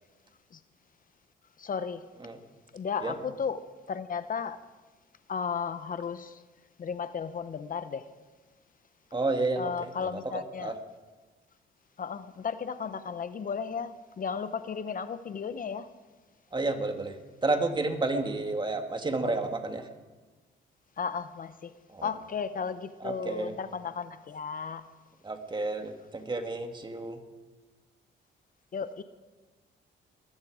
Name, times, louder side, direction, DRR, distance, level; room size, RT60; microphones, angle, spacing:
voice 1, 1.6-2.1 2.7-4.6 5.3-6.4 6.8-8.1 9.6-10.7 12.0-15.9 21.0-21.7 22.0-24.9 28.7-29.0, left 6 dB, 45° left, 12 dB, 0.8 m, -34 dB
voice 2, 9.1-9.7 10.0-10.8 16.5-19.9 21.9-22.1 23.0-23.5 25.2-27.2, right 2 dB, 25° right, 5 dB, 2.1 m, -31 dB
20.5 x 14.0 x 4.9 m, 1.3 s
cardioid pair, 90°, 20 cm